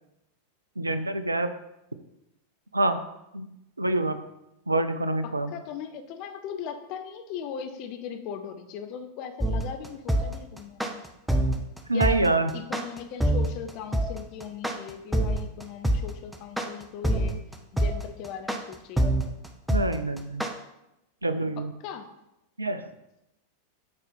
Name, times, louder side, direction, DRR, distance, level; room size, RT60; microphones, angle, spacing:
voice 1, 0.8-1.5 2.7-3.0 3.3-3.5 3.8-4.2 4.7-5.5 11.9-12.5 19.7-20.4 21.2-21.7 22.6-22.8, right 2 dB, 80° right, 11 dB, 0.5 m, -26 dB
voice 2, 5.2-11.0 11.9-12.2 12.5-17.4 17.7-19.1 21.8-22.1, left 8 dB, 40° left, 7 dB, 0.7 m, -39 dB
sound 1, 9.4-20.5, right 1 dB, 5° right, 0.8 m, -25 dB
8.0 x 4.3 x 5.3 m, 0.88 s
figure-of-eight pair, 90°, 0 cm